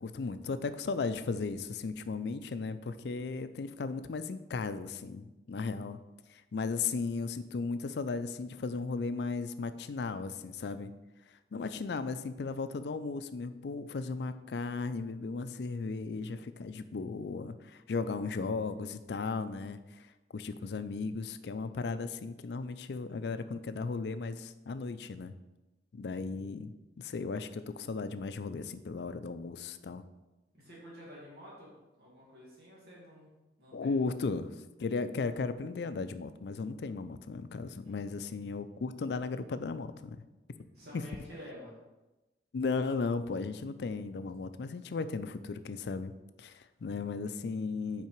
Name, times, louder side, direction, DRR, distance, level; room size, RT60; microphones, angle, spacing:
voice 1, 0.0-6.0 6.3-10.9 11.5-20.1 20.3-25.3 25.9-30.0 33.7-34.5 34.8-40.2 40.9-41.0 42.5-46.1 46.4-48.1, left 4 dB, 70° left, 12 dB, 0.4 m, -36 dB
voice 2, 30.5-31.7 32.0-33.3 33.6-34.0 37.8-38.2 40.7-41.8, equal, 60° right, -6 dB, 1.9 m, -50 dB
5.8 x 4.8 x 4.5 m, 1.0 s
head